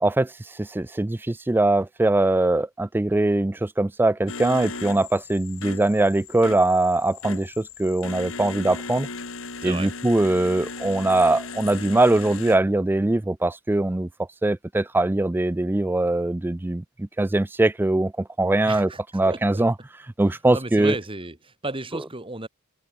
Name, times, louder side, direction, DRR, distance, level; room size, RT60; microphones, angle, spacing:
voice 1, 0.0-9.1 9.6-14.1 14.4-19.7 20.2-20.9, right 2 dB, 10° right, 0.3 m, -22 dB
sound 1, 4.3-12.6, left 4 dB, 75° left, 3.5 m, -37 dB
voice 2, 18.7-19.0 19.3-19.6 20.5-22.5, right 2 dB, 25° right, 2.4 m, -33 dB
open air
head